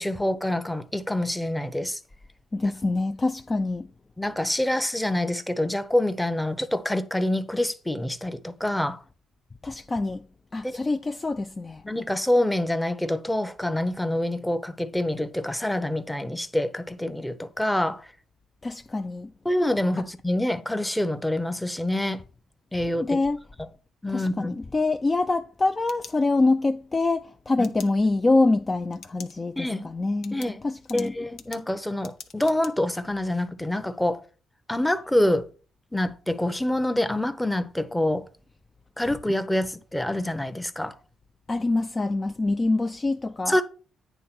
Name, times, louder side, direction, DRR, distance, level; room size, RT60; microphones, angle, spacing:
voice 1, 0.0-2.0 2.6-2.7 4.2-9.0 10.6-10.8 11.8-18.1 19.4-22.2 22.7-23.2 24.0-24.5 27.6-27.7 29.6-29.9 30.3-30.6 30.9-34.2 34.7-35.4 35.9-38.2 39.0-40.9 43.5-43.6, left 1 dB, 5° left, 0.8 m, -26 dB
voice 2, 2.5-3.9 9.6-10.3 10.5-11.8 18.6-19.3 23.0-23.4 24.1-31.1 41.5-43.6, left 2 dB, 25° left, 0.4 m, -25 dB
sound 1, 25.5-26.7 27.6-27.9 28.9-29.3 29.7-29.8 30.2-32.7, left 8 dB, 80° left, 0.9 m, -45 dB
9.3 x 3.6 x 6.0 m
cardioid pair, 90°, 0 cm